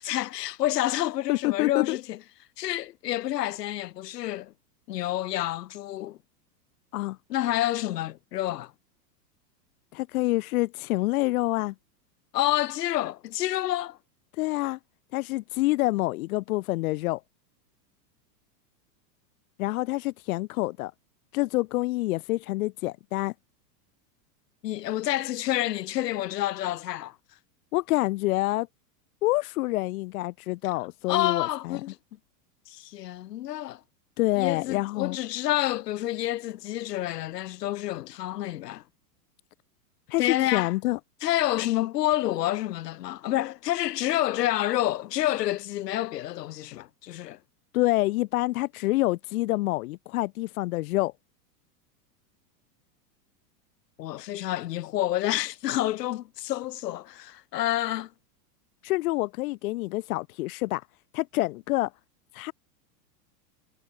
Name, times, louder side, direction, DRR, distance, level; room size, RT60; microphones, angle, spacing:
voice 1, 0.0-2.2 2.6-4.5 4.9-6.2 7.3-8.7 12.3-14.0 24.6-27.2 31.1-32.0 32.7-33.8 34.4-38.8 40.2-40.7 41.2-47.4 54.0-58.1, left 14 dB, 75° left, 4.1 m, -28 dB
voice 2, 1.3-2.0 6.9-7.2 9.9-11.7 14.3-14.8 15.1-17.2 19.6-20.9 21.3-23.3 27.7-28.7 29.2-31.8 34.2-35.2 40.1-41.0 47.7-51.1 58.8-60.8 61.1-61.9 62.3-62.5, left 19 dB, 60° left, 1.0 m, -27 dB
supercardioid pair, 145°, 49 cm